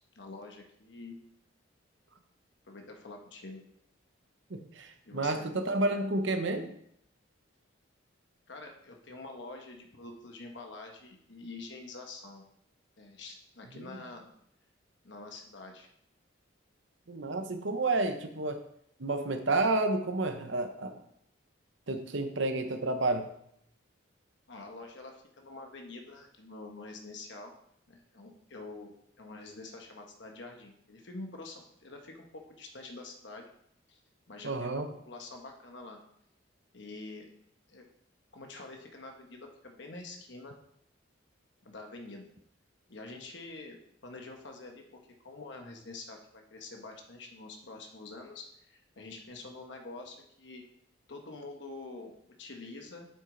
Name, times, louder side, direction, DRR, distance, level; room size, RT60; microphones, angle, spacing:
voice 1, 0.1-1.2 2.7-3.6 5.0-5.5 8.5-12.4 13.0-14.3 15.0-15.9 24.5-27.5 27.9-33.5 33.9-34.0 34.3-36.0 36.7-37.3 37.7-37.8 38.3-40.5 41.6-42.3 42.9-50.6 51.1-52.1 52.4-53.1, left 3 dB, 65° left, 2 dB, 1.1 m, -46 dB
voice 2, 4.5-6.7 17.1-18.6 19.0-21.0 21.9-23.3 34.4-34.9, right 2 dB, 70° right, 7 dB, 0.9 m, -30 dB
8.4 x 6.3 x 3.9 m, 0.72 s
head